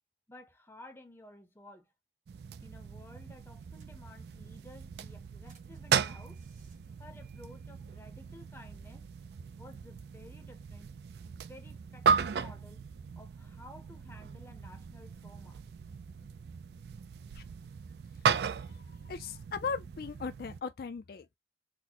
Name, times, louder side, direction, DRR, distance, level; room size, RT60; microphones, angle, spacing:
voice 1, 0.3-1.9 2.6-6.4 7.0-9.0 9.6-10.9 11.3-12.8 13.2-15.6, left 1 dB, 15° left, 0.6 m, -54 dB
sound 1, 2.3-20.6, right 6 dB, 65° right, 0.3 m, -36 dB
sound 2, 3.6-4.4 4.9-8.1, right 2 dB, 45° right, 1.1 m, -64 dB
voice 2, 18.6-21.3, left 5 dB, 55° left, 0.4 m, -38 dB
4.1 x 2.1 x 2.7 m
head